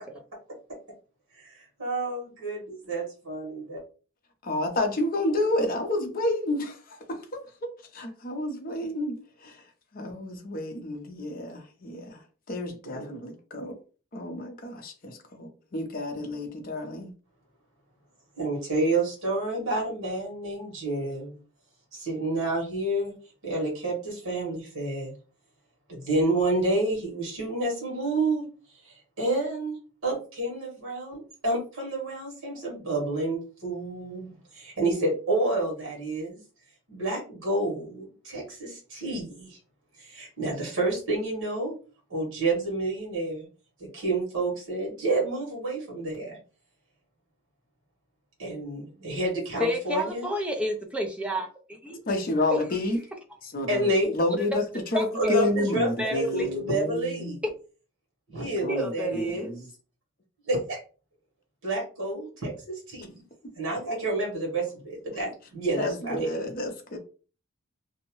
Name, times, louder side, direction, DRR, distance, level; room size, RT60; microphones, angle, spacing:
voice 1, 1.4-3.8 12.9-13.1 18.4-21.4 21.9-23.1 23.4-25.1 25.9-28.5 28.8-29.8 30.0-36.4 36.9-39.6 40.0-41.8 42.1-43.5 43.8-46.4 48.4-50.3 53.7-54.1 55.1-55.4 55.7-57.4 58.3-59.4 60.5-60.8 61.6-63.2 63.6-66.3, right 2 dB, 75° right, 1.3 m, -29 dB
voice 2, 4.4-13.8 14.1-17.1 52.1-53.0 53.4-57.3 58.6-59.7 65.1-65.2 65.8-67.0, left 1 dB, 45° left, 0.6 m, -30 dB
voice 3, 49.6-52.0 54.9-55.3 56.0-56.5 58.7-59.5, equal, 5° right, 0.4 m, -30 dB
2.7 x 2.1 x 3.0 m
head